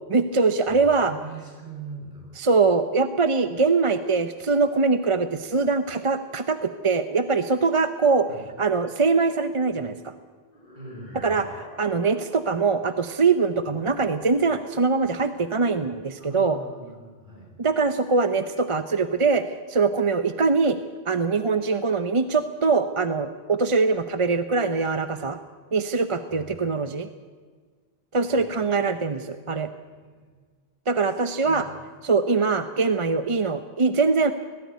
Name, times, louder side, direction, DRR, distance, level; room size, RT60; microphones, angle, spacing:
voice 1, 0.1-1.1 2.4-8.3 8.6-10.1 11.2-11.5 11.8-16.6 17.6-20.8 21.1-25.4 25.7-27.1 28.1-29.7 30.9-31.7 32.0-34.3, right 4 dB, 35° right, 9 dB, 0.7 m, -23 dB
voice 2, 0.6-2.4 8.3-8.5 10.7-11.5 16.2-17.6 26.3-26.5 28.3-30.4 31.1-31.7, right 3 dB, 50° right, -2 dB, 6.8 m, -43 dB
sound 1, 10.5-12.8, left 1 dB, 40° left, 3.8 m, -44 dB
19.5 x 14.5 x 9.5 m, 1.5 s
omnidirectional pair, 1.0 m